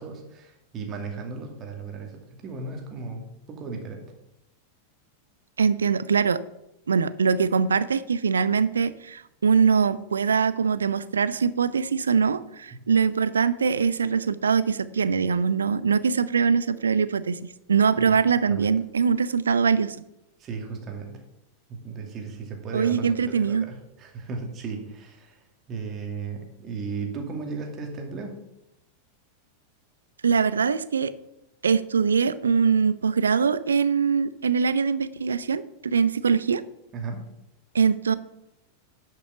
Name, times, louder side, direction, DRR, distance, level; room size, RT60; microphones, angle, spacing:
voice 1, 0.0-4.1 12.7-12.8 18.0-18.2 18.5-18.7 20.4-21.2 21.7-28.4 36.9-37.2, right 4 dB, 30° right, 3 dB, 2.4 m, -36 dB
voice 2, 5.6-6.4 6.9-20.0 22.7-23.7 30.2-31.1 31.6-36.6 37.7-38.1, right 6 dB, 70° right, 15 dB, 0.5 m, -22 dB
11.0 x 6.0 x 5.8 m, 0.89 s
figure-of-eight pair, 90°, 0 cm